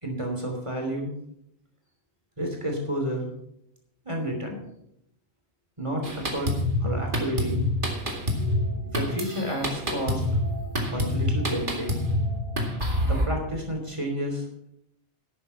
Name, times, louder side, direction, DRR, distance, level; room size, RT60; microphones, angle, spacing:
voice 1, 0.0-1.1 2.4-3.3 4.0-4.6 5.8-6.5 6.8-7.6 8.9-10.2 10.8-11.9 13.0-14.4, right 1 dB, 25° right, 2 dB, 3.1 m, -30 dB
Drum kit, 6.0-13.3, left 1 dB, 50° right, 2.4 m, -27 dB
sound 1, 6.2-13.8, left 2 dB, 80° right, 3.9 m, -44 dB
11.5 x 8.8 x 5.7 m, 0.76 s
omnidirectional pair, 1.1 m